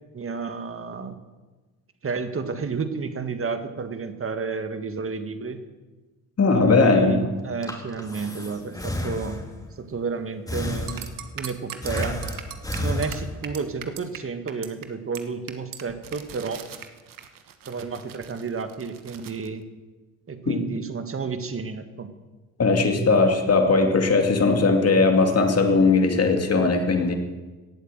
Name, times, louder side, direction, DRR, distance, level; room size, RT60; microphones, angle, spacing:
voice 1, 0.1-1.2 2.0-5.6 6.5-9.4 9.8-11.1 11.4-12.2 12.8-16.6 17.7-19.6 20.3-22.1, right 5 dB, 35° right, 9 dB, 1.8 m, -31 dB
voice 2, 6.4-7.2 20.5-20.6 22.6-27.1, left 3 dB, 40° left, 4 dB, 2.6 m, -19 dB
Breathing, 7.4-9.7 10.5-11.4 11.8-13.6, left 1 dB, 10° left, 3.0 m, -31 dB
sound 1, 10.9-14.2 14.5-14.8 15.1-15.2 15.5-19.5, right 9 dB, 60° right, 1.4 m, -39 dB
17.0 x 8.3 x 7.7 m, 1.2 s
supercardioid pair, 70°, 37 cm